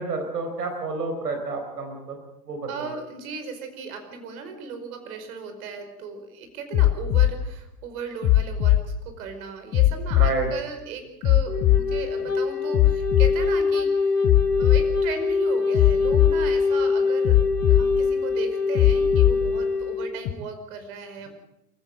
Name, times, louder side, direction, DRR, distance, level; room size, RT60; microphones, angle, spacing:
voice 1, 0.0-2.2 2.5-2.9 10.2-10.5, right 3 dB, 80° right, 4 dB, 4.5 m, -29 dB
voice 2, 2.7-14.3 14.6-17.4 17.7-21.3, right 5 dB, 60° right, 7 dB, 5.2 m, -36 dB
sound 1, 6.7-7.3 8.2-8.8 9.7-10.3 11.2-11.8 12.7-13.3 14.2-14.8 15.7-16.3 17.2-17.8 18.7-19.3 20.2-20.3, left 15 dB, 35° left, 1.5 m, -18 dB
Wind instrument woodwind instrument, 11.5-20.1, left 4 dB, 85° left, 2.8 m, -24 dB
27.0 x 15.5 x 7.9 m, 0.88 s
hypercardioid pair, 90°, 47 cm